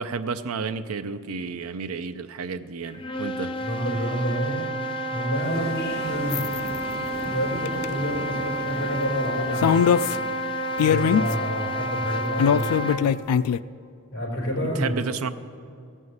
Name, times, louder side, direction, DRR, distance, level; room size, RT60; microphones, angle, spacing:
voice 1, 0.0-3.5 14.8-15.3, right 5 dB, 70° right, 11 dB, 0.5 m, -31 dB
sound 1, 2.9-13.2, equal, 25° left, 0.6 m, -30 dB
voice 2, 3.6-4.7 5.1-6.4 7.2-10.0 10.8-12.9 14.1-14.9, equal, 60° left, -3 dB, 3.8 m, -29 dB
sound 2, 5.3-12.0, equal, 30° right, 1.6 m, -40 dB
sound 3, 6.3-6.6 7.7-7.8 9.6-10.2 10.8-11.3 12.4-13.6, left 8 dB, 80° left, 0.3 m, -21 dB
16.0 x 5.5 x 7.9 m, 2.4 s
head